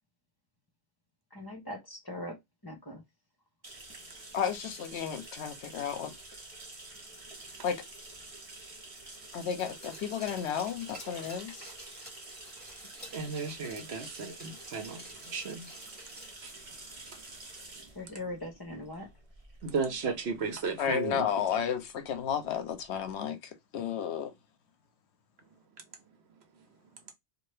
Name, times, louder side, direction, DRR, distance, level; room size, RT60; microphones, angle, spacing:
voice 1, 1.3-2.4 2.6-3.0 11.2-11.7 17.9-19.1, left 1 dB, 20° left, 0.9 m, -41 dB
sound 1, 3.6-23.1, right 2 dB, 35° right, 0.8 m, -49 dB
voice 2, 4.3-6.1 7.6-7.8 9.3-11.6 20.8-24.3, left 8 dB, 75° left, 0.9 m, -33 dB
Glass, 9.6-16.5 16.8-16.9, right 1 dB, 10° right, 1.2 m, -51 dB
voice 3, 13.1-15.7 16.4-16.5 19.6-21.3, right 4 dB, 70° right, 1.0 m, -34 dB
2.7 x 2.5 x 3.3 m
omnidirectional pair, 1.2 m